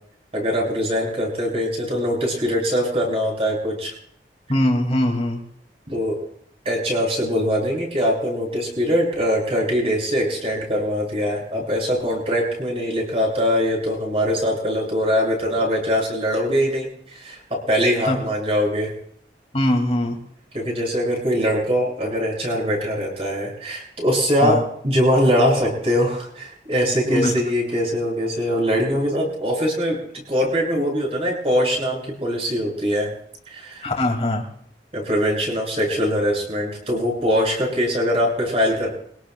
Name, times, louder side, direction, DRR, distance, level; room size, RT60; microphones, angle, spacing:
voice 1, 0.3-3.9 5.9-6.1 6.6-18.9 20.5-24.6 24.8-30.0 30.3-33.1 33.5-33.9 34.9-38.9, equal, 35° right, -2 dB, 6.4 m, -22 dB
voice 2, 4.5-5.4 18.1-18.2 19.5-20.2 24.4-24.6 27.1-27.3 33.8-34.4, left 1 dB, 35° left, 3 dB, 2.1 m, -21 dB
23.5 x 17.5 x 2.2 m, 0.65 s
head